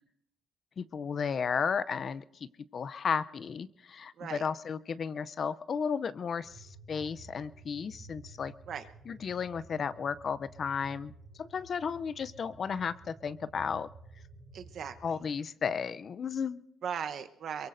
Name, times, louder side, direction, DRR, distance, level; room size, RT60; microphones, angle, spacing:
voice 1, 0.8-8.5 9.1-11.1 11.4-13.9 15.0-16.6, left 6 dB, 50° left, 15 dB, 0.5 m, -34 dB
sound 1, 6.4-15.3, right 3 dB, 10° right, 3.5 m, -53 dB
voice 2, 14.5-15.1 16.8-17.7, right 7 dB, 65° right, 8 dB, 0.9 m, -38 dB
23.0 x 23.0 x 2.6 m, 0.74 s
cardioid pair, 90°, 0 cm